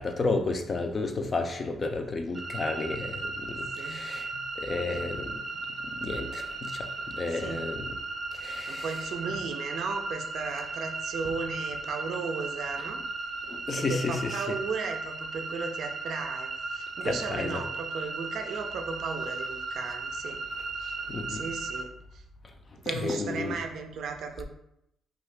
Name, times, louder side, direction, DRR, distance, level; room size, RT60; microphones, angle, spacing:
voice 1, 0.0-4.3 4.6-5.4 5.9-8.0 8.3-8.9 13.5-14.6 17.0-17.6 21.1-21.5 22.9-23.6, left 3 dB, 35° left, 5 dB, 0.4 m, -32 dB
sound 1, 2.3-21.8, right 3 dB, 20° right, 0.6 m, -36 dB
voice 2, 8.7-13.0 13.7-20.4 20.8-21.0 21.3-22.2 22.8-24.4, right 5 dB, 70° right, 4 dB, 0.4 m, -35 dB
2.7 x 2.3 x 3.2 m, 0.80 s
cardioid pair, 90°, 0 cm